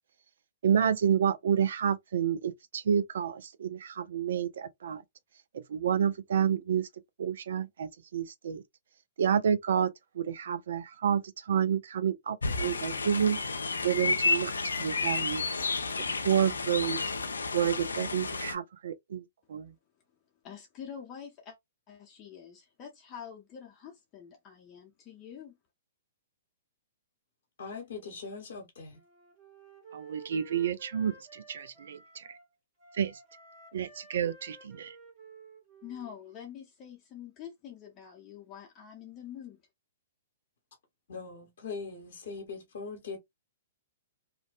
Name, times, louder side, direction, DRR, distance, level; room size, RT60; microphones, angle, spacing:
voice 1, 0.6-5.0 5.7-6.9 7.2-8.6 9.2-13.4 13.8-14.5 14.8-15.5 16.2-17.0 17.5-19.2 19.5-19.7 29.9-32.3 32.9-33.1 33.7-34.9, right 8 dB, 65° right, 0.3 m, -29 dB
sound 1, 12.4-18.5, left 3 dB, 80° left, 0.4 m, -31 dB
voice 2, 20.4-21.6 21.9-25.6 35.8-39.6, left 8 dB, 30° left, 0.6 m, -46 dB
voice 3, 27.6-29.0 41.1-43.2, left 4 dB, 65° left, 0.8 m, -41 dB
Wind instrument woodwind instrument, 28.9-32.5 32.8-36.6, right 4 dB, 35° right, 1.0 m, -53 dB
2.5 x 2.1 x 2.4 m
figure-of-eight pair, 115°, 0 cm